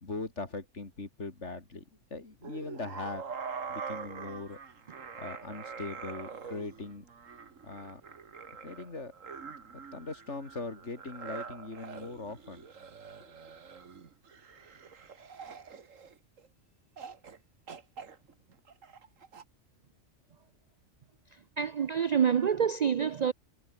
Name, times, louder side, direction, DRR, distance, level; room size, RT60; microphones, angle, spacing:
voice 1, 0.0-1.8 2.1-3.2 3.7-4.6 5.2-7.0 7.6-8.0 8.6-9.1 9.7-12.6, left 3 dB, 65° left, 3.5 m, -40 dB
sound 1, 2.4-16.5 17.0-17.4 17.7-19.4, right 6 dB, 90° right, 2.1 m, -44 dB
voice 2, 21.6-23.3, right 7 dB, 55° right, 0.4 m, -27 dB
omnidirectional pair, 1.3 m